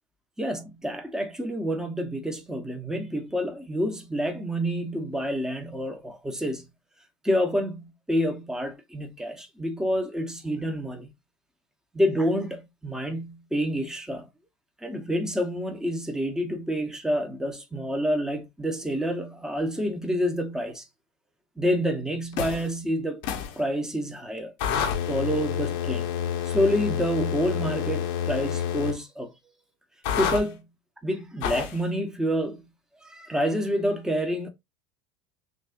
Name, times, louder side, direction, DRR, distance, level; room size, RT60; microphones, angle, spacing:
voice 1, 0.4-6.6 7.2-11.1 11.9-14.3 14.8-20.8 21.6-23.2 23.6-26.1 26.4-29.3 30.2-30.7 31.0-32.7 33.0-34.5, equal, 5° right, 1.1 m, -28 dB
sound 1, 22.3-22.7 23.2-23.6 24.6-29.0 30.0-30.4 31.4-31.8, left 8 dB, 70° left, 1.1 m, -28 dB
6.2 x 2.6 x 2.6 m
supercardioid pair, 130°, 11 cm